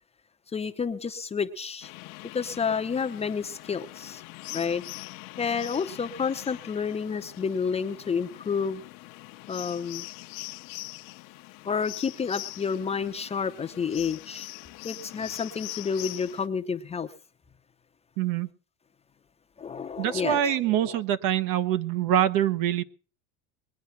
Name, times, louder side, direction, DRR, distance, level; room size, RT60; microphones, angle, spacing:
voice 1, 0.5-1.9 2.3-4.2 4.5-4.8 5.4-8.8 9.5-10.1 11.6-14.5 14.8-17.1 19.6-21.0, left 6 dB, 15° left, 0.7 m, -30 dB
sound 1, 1.8-16.5, left 21 dB, 55° left, 0.8 m, -42 dB
voice 2, 18.2-18.5 20.0-22.8, right 11 dB, 55° right, 1.1 m, -25 dB
21.5 x 9.4 x 5.8 m
cardioid pair, 150°, 39 cm